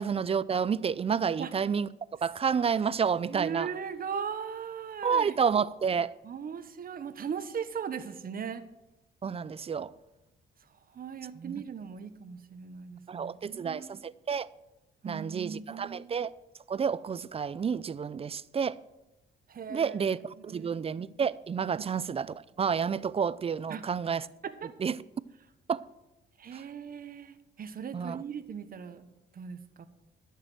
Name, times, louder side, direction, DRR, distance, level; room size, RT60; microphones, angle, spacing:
voice 1, 0.0-1.9 2.2-3.7 5.0-6.1 9.2-9.9 11.4-11.6 13.1-14.5 15.0-16.3 16.7-18.8 19.7-24.3 24.8-25.0 25.7-25.8 26.5-26.6 27.9-28.2, right 6 dB, 30° right, 0.4 m, -30 dB
voice 2, 3.3-5.3 6.2-8.6 10.9-13.9 15.0-16.1 19.5-19.9 20.4-20.9 23.7-23.8 24.4-24.7 26.4-29.1 29.3-29.8, right 7 dB, 45° right, 1.1 m, -38 dB
12.0 x 6.7 x 7.8 m
cardioid pair, 90°, 20 cm